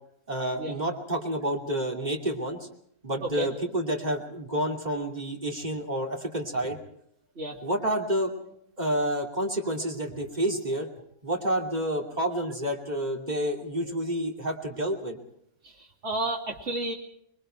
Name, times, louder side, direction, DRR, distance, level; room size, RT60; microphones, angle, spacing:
voice 1, 0.3-2.7 3.0-6.8 7.6-8.3 8.8-10.9 11.2-15.2, right 1 dB, 35° right, 2 dB, 3.0 m, -29 dB
voice 2, 15.6-16.9, right 2 dB, 60° right, 0 dB, 2.8 m, -32 dB
26.5 x 22.0 x 4.5 m, 0.71 s
omnidirectional pair, 1.3 m